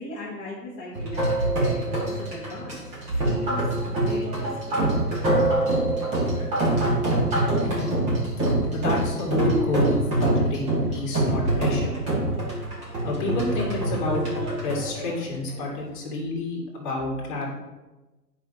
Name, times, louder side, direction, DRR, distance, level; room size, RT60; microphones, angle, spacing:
voice 1, 0.0-4.8, left 1 dB, 15° left, -9 dB, 1.1 m, -38 dB
sound 1, 0.9-15.8, right 1 dB, 15° right, 1.5 m, -25 dB
voice 2, 8.7-11.9 13.0-17.5, left 2 dB, 30° left, -3 dB, 2.1 m, -29 dB
9.5 x 5.6 x 2.8 m, 1.1 s
figure-of-eight pair, 135°, 50 cm